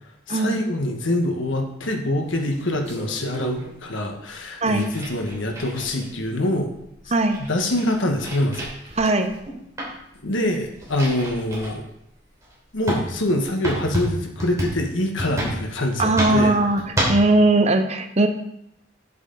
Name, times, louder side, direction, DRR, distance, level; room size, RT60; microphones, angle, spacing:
voice 1, 0.3-6.7 7.5-8.7 10.2-11.8 12.7-16.6, left 1 dB, 85° left, 3 dB, 1.4 m, -25 dB
sound 1, 2.2-3.7 4.6-6.2 6.7-6.8 7.0-9.5 9.8-10.0 10.5-11.7 12.3-12.4 12.9-17.3, equal, 15° right, 3.1 m, -29 dB
voice 2, 9.0-9.3 16.0-16.8 17.1-18.3, right 2 dB, 35° right, 7 dB, 0.7 m, -19 dB
7.9 x 7.8 x 3.9 m, 0.79 s
head